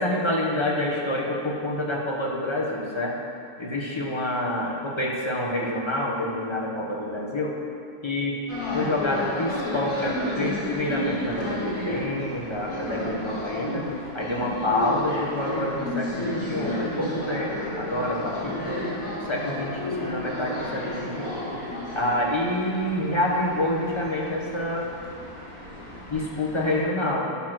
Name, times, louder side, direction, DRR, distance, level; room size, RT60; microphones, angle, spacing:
voice 1, 0.0-3.1 3.6-7.5 8.0-8.4 8.7-13.8 14.1-18.8 19.3-21.4 21.9-24.9 26.1-27.3, left 1 dB, 20° left, -3 dB, 1.0 m, -27 dB
sound 1, 8.5-26.8, left 1 dB, 60° left, 2.3 m, -32 dB
11.5 x 4.3 x 6.1 m, 2.8 s
omnidirectional pair, 1.6 m